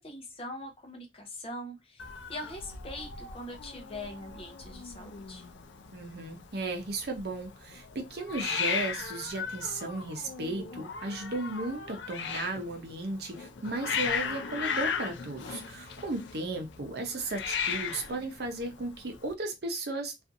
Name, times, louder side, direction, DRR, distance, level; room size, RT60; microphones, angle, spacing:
voice 1, 0.0-2.0 2.3-5.4, left 1 dB, 30° left, 0.7 m, -42 dB
Hiss, 2.0-19.3, left 6 dB, 90° left, 0.4 m, -37 dB
voice 2, 5.9-20.2, right 2 dB, 60° right, 0.7 m, -35 dB
2.6 x 2.4 x 2.5 m
head